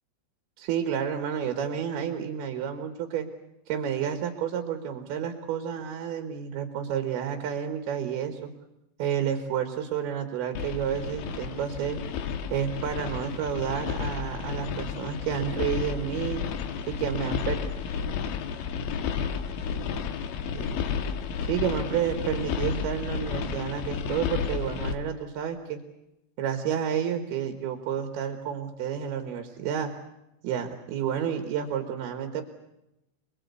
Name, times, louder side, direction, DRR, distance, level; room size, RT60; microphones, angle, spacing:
voice 1, 0.6-3.3 3.7-8.5 9.0-12.0 12.5-16.4 16.9-17.6 20.6-20.8 21.4-25.8 26.4-29.9 30.4-32.4, right 8 dB, 65° right, 7 dB, 3.2 m, -30 dB
sound 1, 10.6-24.9, left 6 dB, 85° left, 3.9 m, -32 dB
27.0 x 21.0 x 8.3 m, 0.89 s
omnidirectional pair, 5.2 m